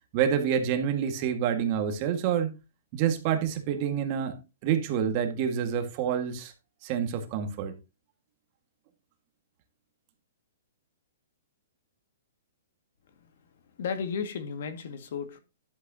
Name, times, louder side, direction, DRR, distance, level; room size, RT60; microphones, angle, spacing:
voice 1, 0.1-2.6 2.9-4.4 4.6-6.5 6.8-7.7, right 8 dB, 35° right, 1.8 m, -27 dB
voice 2, 13.8-15.4, left 6 dB, 55° left, 2.0 m, -34 dB
11.5 x 8.2 x 2.9 m
hypercardioid pair, 165°, 0 cm